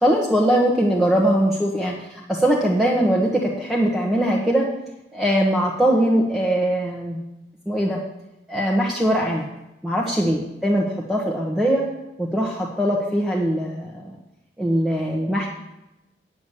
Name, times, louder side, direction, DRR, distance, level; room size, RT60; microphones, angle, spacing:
voice 1, 0.0-4.7 5.1-7.2 7.7-8.0 8.5-9.5 9.8-11.9 12.2-14.2 14.6-15.5, right 1 dB, ahead, -4 dB, 1.2 m, -21 dB
9.2 x 7.2 x 8.3 m, 0.94 s
head